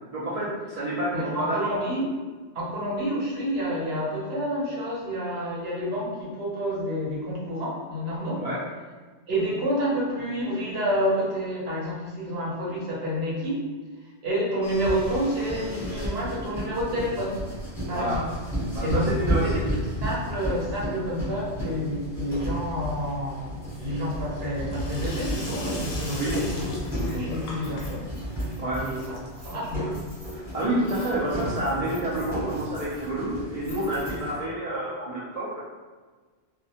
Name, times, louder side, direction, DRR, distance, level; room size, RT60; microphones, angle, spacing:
voice 1, 0.1-1.8 8.4-8.6 17.9-18.2 18.7-19.6 26.1-26.5 28.6-28.9 30.3-35.6, right 1 dB, 80° right, -8 dB, 0.3 m, -29 dB
voice 2, 1.1-2.0 2.5-8.4 9.3-13.6 14.2-17.4 17.9-18.3 18.8-19.1 19.4-19.7 20.0-26.7 27.1-28.1 28.7-29.2 29.4-30.0, equal, 60° right, -5 dB, 0.9 m, -29 dB
sound 1, 14.6-34.4, equal, ahead, 0.7 m, -33 dB
Sink (filling or washing), 23.5-30.3, left 1 dB, 75° left, 0.9 m, -40 dB
2.2 x 2.1 x 2.7 m, 1.4 s
omnidirectional pair, 1.2 m